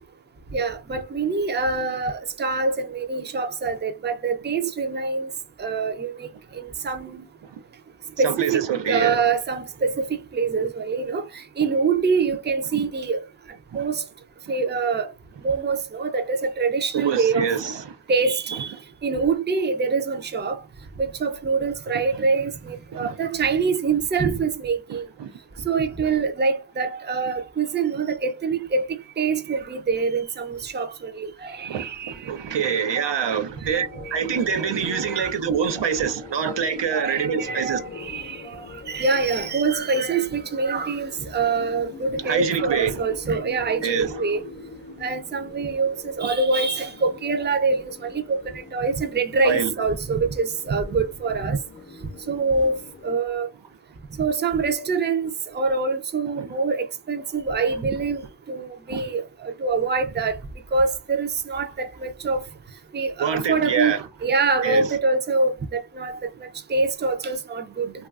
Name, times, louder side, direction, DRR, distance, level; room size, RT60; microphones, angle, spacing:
voice 1, 0.5-5.3 5.6-7.3 8.2-13.2 13.7-14.0 14.5-15.1 15.4-17.5 18.1-18.7 19.0-20.6 21.0-25.1 25.6-32.2 32.5-32.7 33.0-33.1 33.6-34.1 34.6-35.3 36.9-44.4 45.0-51.6 52.3-52.8 53.0-53.5 54.2-60.3 60.7-62.4 62.9-67.9, right 4 dB, 25° right, 0.4 m, -25 dB
voice 2, 8.2-9.2 12.7-12.8 16.9-18.0 22.9-23.2 25.2-25.3 31.6-37.8 42.2-42.9 43.8-44.2 49.4-49.7 56.4-56.5 58.9-59.0 63.2-64.0 64.6-64.9, right 7 dB, 85° right, 0.6 m, -25 dB
sound 1, 33.6-53.1, left 5 dB, 30° left, 0.6 m, -42 dB
3.0 x 2.3 x 2.3 m
wide cardioid pair, 70°, 42 cm